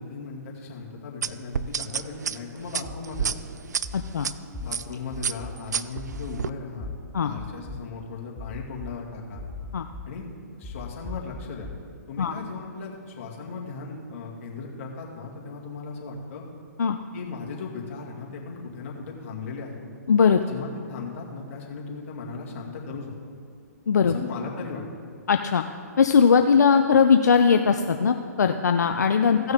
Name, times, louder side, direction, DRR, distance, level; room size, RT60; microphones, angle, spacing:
voice 1, 0.0-3.4 4.6-9.4 10.0-10.3 10.6-11.7 12.1-16.4 17.1-19.8 20.3-23.1 24.0-24.8 29.3-29.5, left 4 dB, 50° left, -2 dB, 2.2 m, -37 dB
sound 1, 1.2-4.3 4.7-4.9 5.2-6.5, right 7 dB, 75° right, 0.4 m, -29 dB
sound 2, 2.8-3.2 3.8-4.1 4.5-4.6 5.1-5.5 6.0-6.3 6.8-6.9 7.4-7.8 8.4-8.9 9.4-10.0 10.6-11.7, left 2 dB, 5° left, 0.9 m, -37 dB
voice 2, 3.9-4.3 7.1-7.3 9.7-9.9 12.2-12.3 16.8-17.0 20.1-20.4 23.9-24.2 25.3-25.6 26.0-29.5, left 6 dB, 75° left, 6 dB, 0.5 m, -19 dB
16.5 x 6.3 x 3.6 m, 2.2 s
hypercardioid pair, 140°, 9 cm